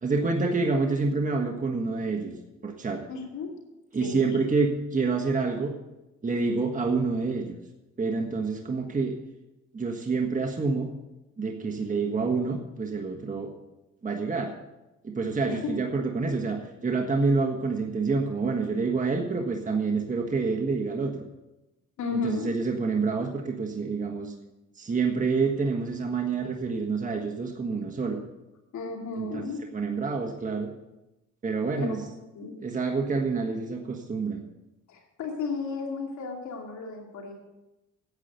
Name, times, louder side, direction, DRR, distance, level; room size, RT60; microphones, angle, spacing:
voice 1, 0.0-2.3 2.6-3.0 3.9-5.7 6.2-7.6 8.0-9.1 9.7-10.9 11.4-13.5 14.0-14.5 15.0-21.2 22.1-24.3 24.7-28.2 29.2-29.4 29.7-30.7 31.4-32.0 32.6-34.4, right 4 dB, 25° right, 2 dB, 1.5 m, -27 dB
voice 2, 3.1-3.5 4.0-4.4 15.5-15.7 22.0-22.6 28.7-29.6 31.8-31.9 32.3-32.6 34.9-37.3, left 4 dB, 70° left, 0 dB, 2.5 m, -33 dB
9.9 x 8.4 x 7.9 m, 1.0 s
cardioid pair, 90°, 30 cm